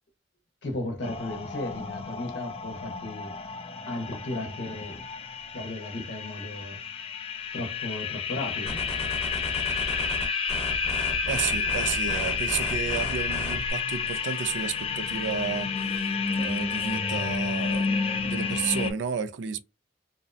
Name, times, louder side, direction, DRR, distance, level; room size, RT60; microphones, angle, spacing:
voice 1, 0.6-3.4 3.9-5.0 5.5-6.8 7.5-8.8, left 1 dB, 70° left, 0.7 m, -35 dB
sound 1, 1.0-18.9, left 5 dB, 30° left, 0.3 m, -30 dB
sound 2, 8.7-13.7, equal, 15° left, 0.8 m, -35 dB
voice 2, 11.3-15.7 15.9-19.6, right 7 dB, 80° right, 0.3 m, -32 dB
2.6 x 2.0 x 2.5 m
head